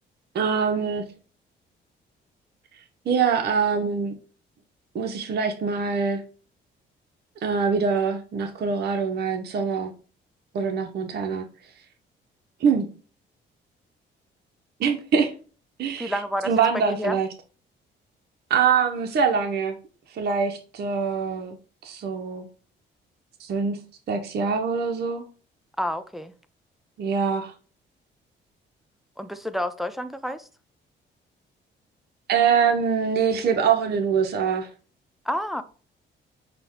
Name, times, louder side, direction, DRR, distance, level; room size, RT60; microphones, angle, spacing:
voice 1, 0.3-1.0 2.7-4.1 4.9-6.2 7.4-9.9 10.5-11.5 12.6-12.9 14.8-15.3 15.8-16.2 16.4-17.3 18.5-19.8 20.1-21.6 21.8-22.5 23.4-23.8 24.1-25.2 27.0-27.5 32.3-34.7, right 6 dB, 55° right, 0.5 m, -24 dB
voice 2, 16.0-16.5 16.8-17.2 25.8-26.3 29.2-30.5 35.3-35.6, equal, ahead, 0.3 m, -29 dB
5.8 x 2.0 x 3.5 m
cardioid pair, 90°, 20 cm